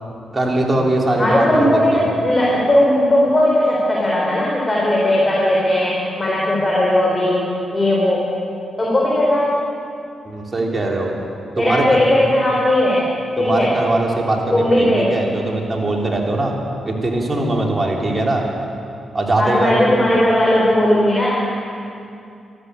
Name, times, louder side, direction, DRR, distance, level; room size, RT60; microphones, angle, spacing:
voice 1, 0.3-2.1 10.2-11.1 11.6-12.0 13.4-16.5 16.8-18.4 19.1-19.8, right 2 dB, 35° right, 0 dB, 3.3 m, -21 dB
voice 2, 1.2-7.4 7.7-8.2 8.8-9.5 11.6-13.1 13.4-13.7 14.5-15.1 19.4-21.3, left 1 dB, 30° left, -4 dB, 3.9 m, -17 dB
13.5 x 13.0 x 8.2 m, 2.5 s
supercardioid pair, 55°, 0 cm